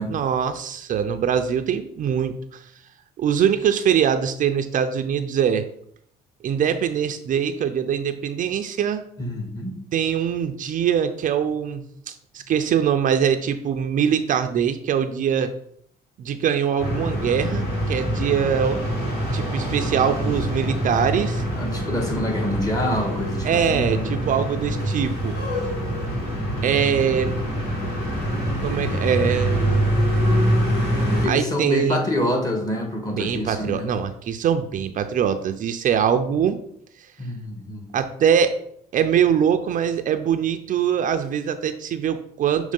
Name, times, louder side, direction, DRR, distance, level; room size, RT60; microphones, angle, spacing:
voice 1, 0.1-2.6 3.2-5.7 6.4-9.0 9.9-15.5 16.2-18.8 19.3-21.4 23.4-25.3 26.6-27.4 28.6-30.0 31.3-32.0 33.2-36.6 37.9-38.6 38.9-42.7, right 8 dB, 50° right, 8 dB, 0.5 m, -23 dB
voice 2, 9.2-9.8 21.5-24.1 31.2-33.9 37.2-37.9, left 1 dB, 20° left, 3 dB, 1.7 m, -26 dB
sound 1, 16.8-31.3, equal, 90° left, 2.1 m, -25 dB
6.4 x 3.2 x 5.2 m, 0.68 s
cardioid pair, 110°, 17 cm